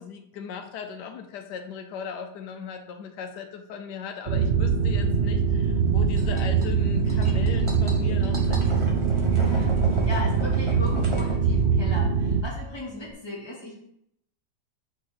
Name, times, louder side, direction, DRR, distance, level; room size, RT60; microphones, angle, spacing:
voice 1, 0.0-8.8, left 7 dB, 85° left, 5 dB, 1.3 m, -38 dB
sound 1, 4.3-12.4, right 6 dB, 85° right, 0.5 m, -23 dB
sound 2, 4.8-13.1, equal, 50° left, 1.2 m, -39 dB
sound 3, 6.2-11.4, right 1 dB, 25° right, 0.8 m, -35 dB
voice 2, 9.3-13.7, left 2 dB, 15° left, -4 dB, 1.8 m, -37 dB
5.4 x 3.7 x 5.8 m, 0.73 s
omnidirectional pair, 1.8 m